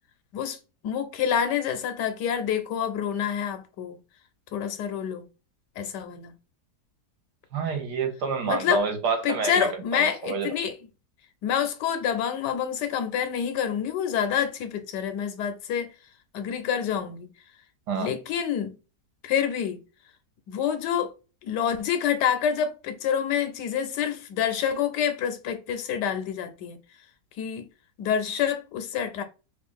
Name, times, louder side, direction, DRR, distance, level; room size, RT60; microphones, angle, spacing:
voice 1, 0.8-4.0 4.5-5.3 5.8-6.3 8.5-8.8 9.2-10.7 11.4-15.9 16.3-17.3 18.0-18.8 19.2-19.8 20.5-21.1 21.4-26.8 27.4-27.7 28.0-29.2, left 8 dB, 85° left, 1.3 m, -27 dB
voice 2, 7.5-10.5 17.9-18.1, right 5 dB, 80° right, 1.5 m, -28 dB
3.1 x 2.5 x 3.7 m
omnidirectional pair, 1.8 m